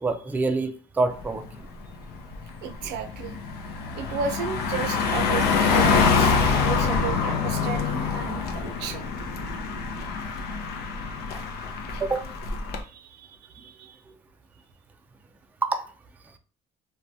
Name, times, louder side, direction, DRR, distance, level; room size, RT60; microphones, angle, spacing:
voice 1, 0.0-1.4 12.0-12.2 15.6-15.8, right 3 dB, 10° right, 6 dB, 0.3 m, -26 dB
Car passing by, 1.2-1.5 1.8-12.8, left 5 dB, 70° left, 0.5 m, -25 dB
voice 2, 2.6-3.4 3.9-9.1 12.8-14.0, right 7 dB, 85° right, 6 dB, 0.5 m, -34 dB
3.1 x 2.2 x 2.6 m, 0.40 s
cardioid pair, 110°, 17 cm